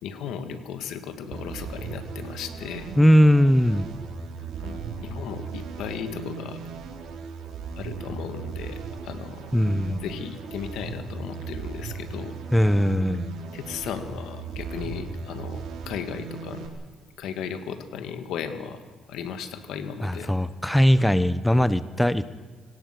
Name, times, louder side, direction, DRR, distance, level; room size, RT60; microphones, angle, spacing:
voice 1, 0.0-2.9 4.6-6.6 7.7-9.5 10.0-12.4 13.5-16.7 17.2-20.3, left 7 dB, 85° left, 9 dB, 2.1 m, -36 dB
sound 1, 1.3-16.7, right 5 dB, 80° right, 3.8 m, -37 dB
voice 2, 3.0-3.9 9.5-10.0 12.5-13.3 20.0-22.3, equal, 5° left, 14 dB, 1.0 m, -20 dB
25.5 x 19.0 x 6.2 m, 1.4 s
cardioid pair, 90°, 0 cm